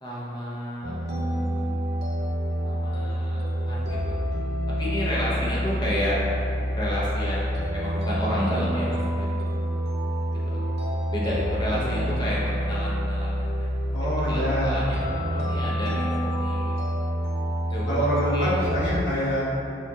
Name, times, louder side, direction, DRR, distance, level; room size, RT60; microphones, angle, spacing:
voice 1, 0.0-1.7 2.6-4.2 4.8-6.2 6.8-9.3 10.5-10.6 11.1-13.7 14.2-16.9 17.7-18.1 18.3-18.6, equal, 25° left, -7 dB, 0.8 m, -31 dB
sound 1, 0.8-19.0, equal, 60° right, 0.7 m, -27 dB
voice 2, 13.9-14.8 17.9-19.7, equal, 70° left, -8 dB, 1.1 m, -26 dB
6.3 x 2.8 x 2.4 m, 2.8 s
head